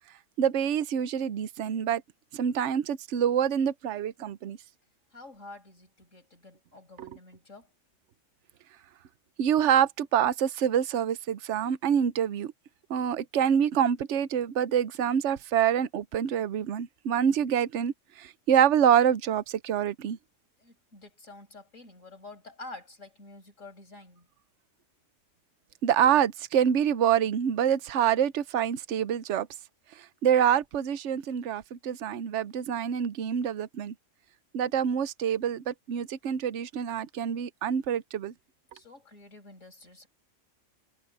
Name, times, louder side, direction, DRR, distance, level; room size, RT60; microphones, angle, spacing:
voice 1, 0.4-2.0 2.3-4.6 7.0-7.1 9.4-12.5 12.9-20.2 25.8-29.5 30.0-33.9 34.5-38.3, right 9 dB, 70° right, 1.1 m, -26 dB
voice 2, 5.1-7.7 20.6-24.3 38.7-40.1, left 2 dB, 85° left, 6.4 m, -48 dB
omnidirectional pair, 1.3 m